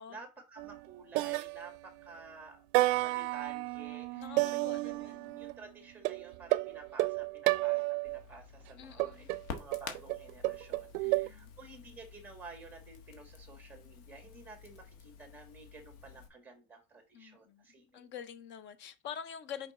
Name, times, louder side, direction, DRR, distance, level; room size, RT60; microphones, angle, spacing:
voice 1, 0.0-2.6 3.0-18.1, right 3 dB, 5° right, 1.6 m, -52 dB
sound 1, 0.6-0.9 1.2-2.2 2.7-5.6 6.0-8.2 9.0-11.3, right 20 dB, 70° right, 0.5 m, -32 dB
voice 2, 4.1-5.4 8.8-9.3 11.0-11.5 17.1-17.7 17.9-19.7, left 8 dB, 30° left, 0.5 m, -46 dB
Crackle, 8.0-16.3, left 6 dB, 70° left, 1.5 m, -50 dB
5.8 x 5.1 x 4.1 m
cardioid pair, 170°, 42 cm